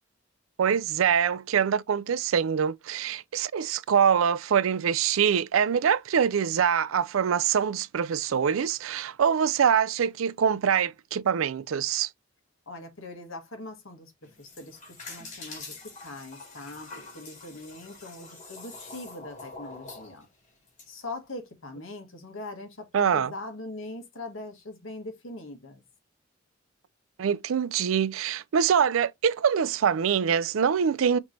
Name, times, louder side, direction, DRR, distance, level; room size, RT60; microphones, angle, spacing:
voice 1, 0.6-12.1 22.9-23.3 27.2-31.2, right 7 dB, 85° right, 0.4 m, -24 dB
voice 2, 12.6-14.8 15.1-20.3 20.9-25.8, left 2 dB, 85° left, 1.7 m, -41 dB
sound 1, 14.2-20.9, left 3 dB, 40° left, 3.0 m, -45 dB
5.9 x 3.2 x 2.7 m
head